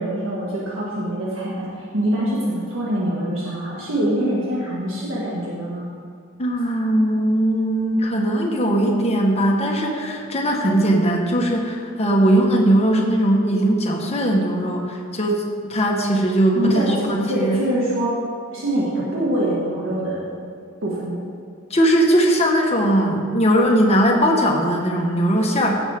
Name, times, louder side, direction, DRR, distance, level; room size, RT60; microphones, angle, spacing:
voice 1, 0.0-5.9 16.5-18.2 18.5-20.2 20.8-21.2, right 1 dB, 70° right, -7 dB, 1.9 m, -24 dB
voice 2, 6.4-17.6 21.7-25.8, right 1 dB, 30° left, 0 dB, 1.4 m, -19 dB
16.0 x 7.3 x 3.7 m, 2.3 s
head